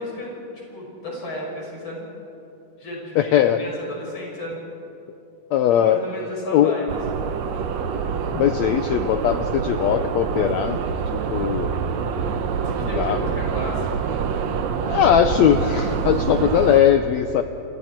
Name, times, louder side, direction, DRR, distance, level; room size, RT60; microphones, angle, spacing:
voice 1, 0.0-2.0 2.8-3.3 3.6-4.6 5.7-7.3 12.6-14.4, left 1 dB, 35° left, -3 dB, 6.4 m, -34 dB
voice 2, 3.2-3.6 5.5-6.1 6.5-6.8 8.3-10.8 11.1-11.9 12.9-13.3 14.8-17.4, left 10 dB, 75° left, 8 dB, 1.7 m, -19 dB
sound 1, 6.9-16.8, right 6 dB, 65° right, 2.0 m, -26 dB
28.5 x 26.5 x 4.5 m, 2.8 s
omnidirectional pair, 3.7 m